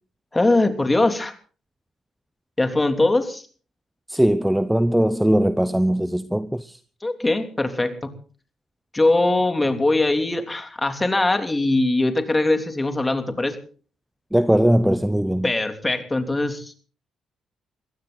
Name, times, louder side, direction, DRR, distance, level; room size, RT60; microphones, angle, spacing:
voice 1, 0.3-1.3 2.6-3.4 7.0-8.1 8.9-13.6 15.4-16.8, left 2 dB, 15° left, 3.1 m, -21 dB
voice 2, 4.1-6.8 14.3-15.5, right 1 dB, 5° right, 0.8 m, -20 dB
22.5 x 16.0 x 4.0 m
cardioid pair, 90°, 0 cm